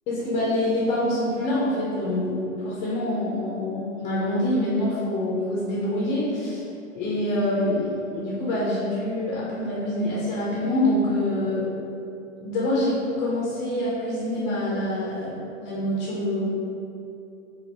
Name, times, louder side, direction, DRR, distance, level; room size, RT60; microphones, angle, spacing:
voice 1, 0.1-6.6 6.9-11.7 12.4-16.5, left 1 dB, 20° left, -6 dB, 0.7 m, -26 dB
4.6 x 2.8 x 4.1 m, 2.7 s
figure-of-eight pair, 115°, 39 cm